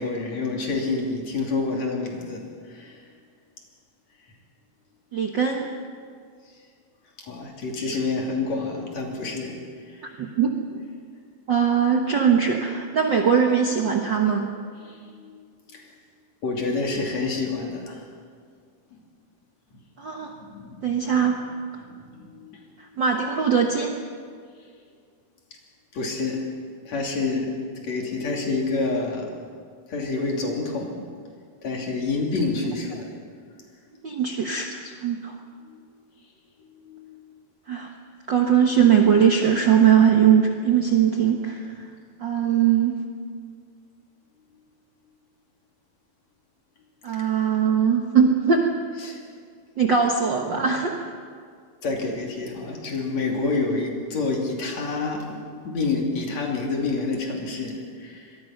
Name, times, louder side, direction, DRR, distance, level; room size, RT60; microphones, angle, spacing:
voice 1, 0.0-3.0 7.2-10.1 14.8-15.4 15.7-15.9 16.4-18.0 18.9-19.0 19.7-19.8 20.2-21.1 21.8-22.8 25.9-26.5 26.9-29.3 29.9-31.1 31.6-33.1 35.6-35.9 36.6-37.2 47.1-47.3 49.0-49.2 50.5-50.8 51.8-58.4, left 3 dB, 50° left, 0 dB, 3.9 m, -28 dB
voice 2, 5.1-5.7 10.2-10.5 11.5-14.5 20.0-20.3 20.8-21.4 23.0-24.0 34.0-35.3 37.7-37.9 38.3-41.7 42.2-43.0 47.0-48.7 49.8-51.0, right 7 dB, 85° right, 2 dB, 1.0 m, -20 dB
26.0 x 21.0 x 6.0 m, 2.1 s
omnidirectional pair, 4.2 m